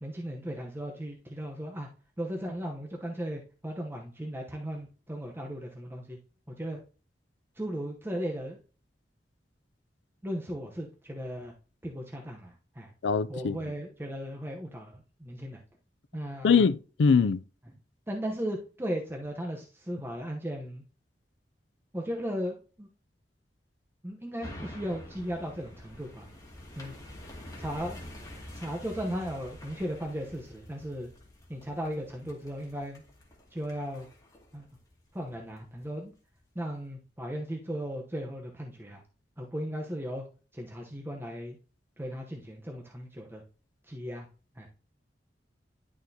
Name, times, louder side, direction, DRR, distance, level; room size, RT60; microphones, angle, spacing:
voice 1, 0.0-1.9 2.2-6.2 6.6-6.8 7.6-8.6 10.2-11.5 11.8-12.9 13.3-15.6 16.1-16.6 18.1-20.8 21.9-22.9 24.0-26.3 26.8-26.9 27.6-28.0 28.5-31.1 31.5-33.0 33.5-34.1 34.5-34.7 35.1-36.1 36.5-39.0 39.4-40.2 40.5-41.6 42.0-43.4 43.9-44.3 44.6-44.7, equal, 15° right, 0.9 m, -36 dB
voice 2, 13.0-13.6 16.4-17.4, left 5 dB, 75° left, 0.4 m, -23 dB
sound 1, 24.4-35.9 36.3-36.4, left 1 dB, 20° left, 2.3 m, -47 dB
11.0 x 6.5 x 2.8 m
head